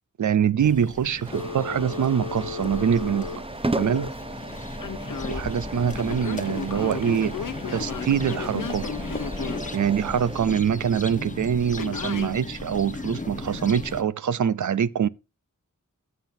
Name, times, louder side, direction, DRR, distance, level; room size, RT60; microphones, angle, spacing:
voice 1, 0.2-3.3 3.8-4.1 5.3-7.4 7.7-8.9 9.7-15.1, right 8 dB, 65° right, 0.5 m, -24 dB
sound 1, 0.6-14.0, left 2 dB, 25° left, 0.9 m, -36 dB
sound 2, 1.2-10.5, right 2 dB, 20° right, 0.5 m, -36 dB
Telephone, 1.3-4.1 4.8-5.4 6.0-9.7 11.8-12.3, left 6 dB, 80° left, 0.9 m, -34 dB
15.0 x 7.2 x 2.7 m
wide cardioid pair, 70°, 32 cm